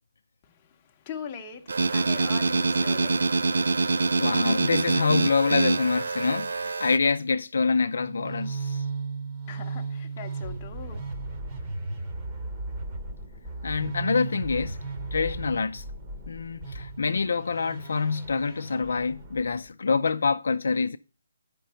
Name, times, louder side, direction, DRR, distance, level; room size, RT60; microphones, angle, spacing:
voice 1, 0.4-3.4 9.5-11.1, left 7 dB, 20° left, 0.8 m, -41 dB
sound 1, 1.7-7.0, right 3 dB, 75° right, 0.4 m, -25 dB
voice 2, 4.2-8.8 13.6-14.8 15.1-15.8 16.3-21.0, left 4 dB, 65° left, 0.4 m, -26 dB
sound 2, 7.8-19.7, right 3 dB, 20° right, 1.0 m, -36 dB
7.6 x 5.2 x 5.5 m
hypercardioid pair, 165°, 0 cm